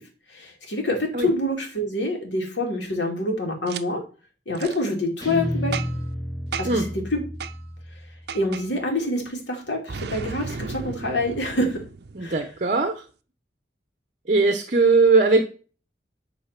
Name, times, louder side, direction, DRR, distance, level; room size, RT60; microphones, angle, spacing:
voice 1, 0.3-4.0 4.5-5.8 6.6-7.2 8.3-11.8 12.2-12.5, left 1 dB, 80° left, 1 dB, 2.8 m, -26 dB
Boom, 3.7-3.8 4.6-4.8 5.7-6.1 6.5-6.9 7.4-7.6 8.3-8.7 9.9-12.6, right 5 dB, 60° right, 0.6 m, -34 dB
Guitar, 5.2-8.4, equal, 20° left, 3.1 m, -31 dB
voice 2, 12.1-13.0 14.3-15.4, right 3 dB, 45° right, 7 dB, 0.9 m, -19 dB
10.0 x 4.1 x 5.9 m, 0.37 s
head